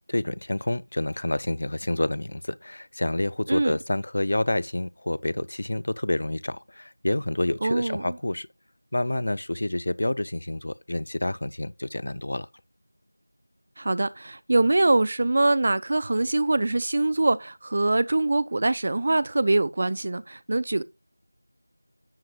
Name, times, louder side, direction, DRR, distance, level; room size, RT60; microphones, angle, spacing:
voice 1, 0.0-8.5 8.9-12.5, left 1 dB, 40° left, 0.4 m, -28 dB
voice 2, 7.6-8.1 13.8-20.8, right 2 dB, 25° right, 0.4 m, -23 dB
10.5 x 7.7 x 2.3 m
figure-of-eight pair, 175°, 0 cm